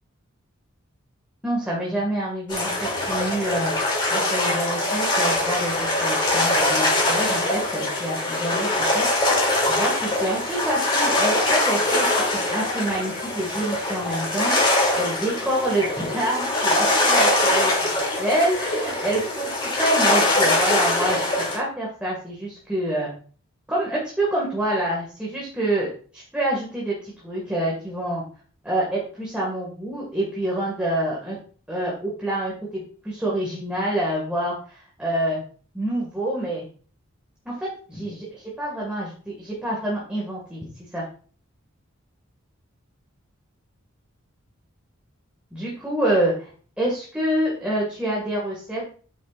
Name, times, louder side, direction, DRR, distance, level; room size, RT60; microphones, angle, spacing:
voice 1, 1.4-3.7 4.1-23.1 23.7-28.2 28.6-31.4 31.7-35.4 35.7-36.6 37.5-40.6 40.9-41.0 45.5-46.5 46.8-48.9, right 1 dB, 5° right, -5 dB, 2.1 m, -27 dB
sound 1, 2.5-21.6, left 2 dB, 25° left, 3.1 m, -22 dB
9.3 x 7.8 x 2.6 m, 0.42 s
head